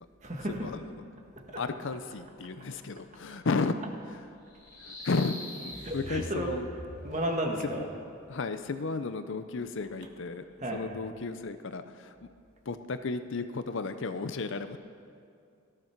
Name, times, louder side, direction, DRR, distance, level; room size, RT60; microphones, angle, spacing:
voice 1, 0.2-0.7 1.3-1.6 5.8-6.5 7.0-7.8 10.6-10.9, right 1 dB, 30° right, 1 dB, 1.6 m, -33 dB
voice 2, 1.6-3.8 4.1-4.2 4.8-5.3 5.6-6.7 7.8-7.9 8.3-10.4 10.7-12.2 12.7-14.8, left 4 dB, 55° left, 10 dB, 0.5 m, -33 dB
sound 1, 4.5-7.3, left 1 dB, 20° left, 3.1 m, -42 dB
18.0 x 13.5 x 4.6 m, 2.4 s
head